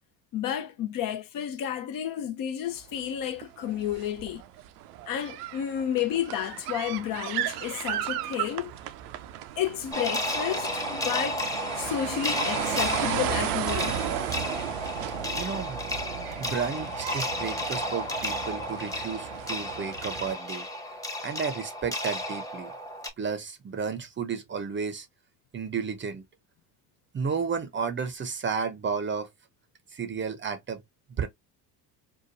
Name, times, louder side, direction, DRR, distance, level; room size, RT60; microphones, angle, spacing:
voice 1, 0.3-4.4 5.1-8.7 9.6-11.5 11.7-14.0, left 10 dB, 45° left, 0.6 m, -31 dB
sound 1, 2.8-3.0 3.3-20.3, right 11 dB, 70° right, 0.6 m, -35 dB
sound 2, 9.9-23.1, left 1 dB, 5° left, 0.9 m, -32 dB
voice 2, 15.1-15.8 16.4-20.7 21.2-22.7 23.2-25.1 25.5-26.2 27.1-29.3 29.9-30.8 31.1-31.3, right 6 dB, 25° right, 0.6 m, -32 dB
3.0 x 2.2 x 2.7 m
hypercardioid pair, 65°, 49 cm